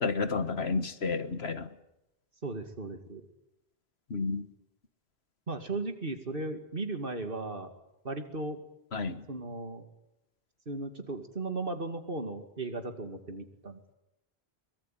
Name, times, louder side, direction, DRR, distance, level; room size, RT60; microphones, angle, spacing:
voice 1, 0.0-1.7 4.1-4.5 8.9-9.2, left 4 dB, 80° left, 11 dB, 1.8 m, -31 dB
voice 2, 2.4-3.3 5.5-7.7 8.0-8.6 9.3-9.9 10.7-13.9, right 2 dB, 60° right, 6 dB, 2.6 m, -36 dB
24.0 x 22.0 x 9.4 m, 0.89 s
omnidirectional pair, 1.1 m